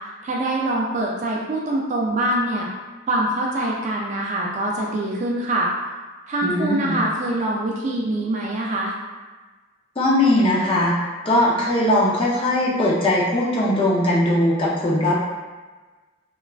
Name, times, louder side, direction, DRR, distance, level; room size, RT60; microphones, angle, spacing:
voice 1, 0.2-2.7 3.1-5.7 6.3-8.9, right 1 dB, 35° right, -2 dB, 0.3 m, -24 dB
voice 2, 6.4-7.0 10.0-11.0 11.2-15.1, left 1 dB, 25° left, -6 dB, 0.5 m, -19 dB
3.2 x 2.3 x 2.3 m, 1.3 s
head